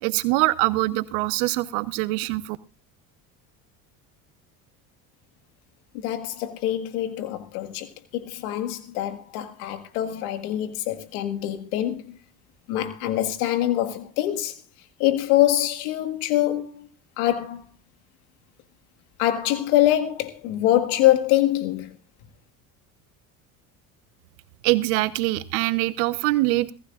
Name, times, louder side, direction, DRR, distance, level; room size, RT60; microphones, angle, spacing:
voice 1, 0.0-2.6 24.6-26.7, right 19 dB, 75° right, 1.1 m, -23 dB
voice 2, 5.9-12.2 12.7-14.6 15.0-16.9 17.2-17.6 19.2-22.0, left 13 dB, 80° left, 1.8 m, -24 dB
23.0 x 14.5 x 2.5 m
supercardioid pair, 85°, 43 cm